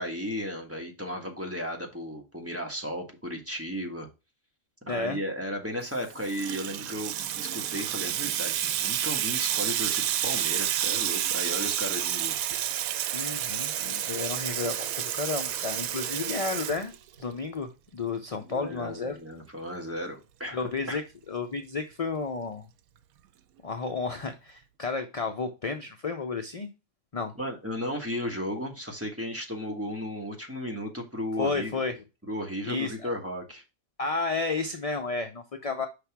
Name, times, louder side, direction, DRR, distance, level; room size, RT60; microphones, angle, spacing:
voice 1, 0.0-4.1 4.9-12.4 18.4-21.0 27.4-31.8 32.3-33.6, equal, 10° right, 1 dB, 1.2 m, -35 dB
voice 2, 4.9-5.2 13.1-16.9 17.2-19.2 20.5-21.0 21.3-22.7 23.6-26.7 27.1-27.3 31.4-32.0 32.6-33.1 34.0-35.9, left 4 dB, 45° left, 6 dB, 0.4 m, -32 dB
Water tap faucet / Sink (filling or washing), 5.9-17.4, right 11 dB, 90° right, 1.0 m, -30 dB
5.5 x 3.4 x 5.8 m, 0.27 s
omnidirectional pair, 1.4 m